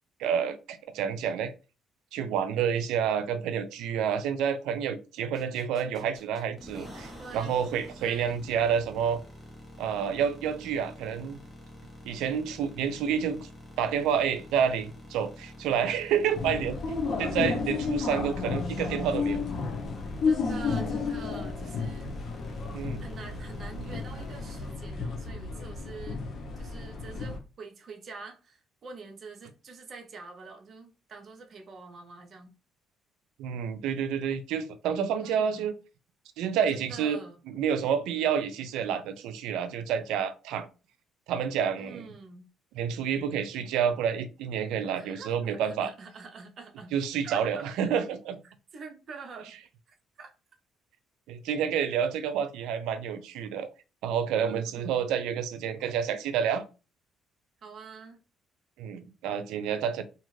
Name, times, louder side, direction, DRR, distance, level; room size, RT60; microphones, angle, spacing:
voice 1, 0.2-1.5 2.1-9.2 9.8-11.4 12.1-13.5 13.8-16.8 17.2-19.4 22.7-23.0 33.4-35.7 36.4-37.2 37.5-40.7 41.3-42.1 42.7-45.9 46.9-48.4 51.3-53.7 54.0-56.6 58.8-60.0, right 8 dB, 85° right, 0.4 m, -29 dB
sound 1, 5.3-24.7, left 1 dB, ahead, 1.1 m, -48 dB
voice 2, 7.2-8.5 20.2-22.2 23.0-26.2 26.6-32.5 35.2-35.7 36.7-37.4 41.8-42.5 44.9-46.9 47.2-47.6 48.7-49.5 49.9-50.3 54.4-55.0 57.6-58.2, right 4 dB, 50° right, 0.7 m, -46 dB
sound 2, 16.3-27.4, left 4 dB, 60° left, 0.7 m, -32 dB
2.4 x 2.4 x 3.1 m
cardioid pair, 95°, 0 cm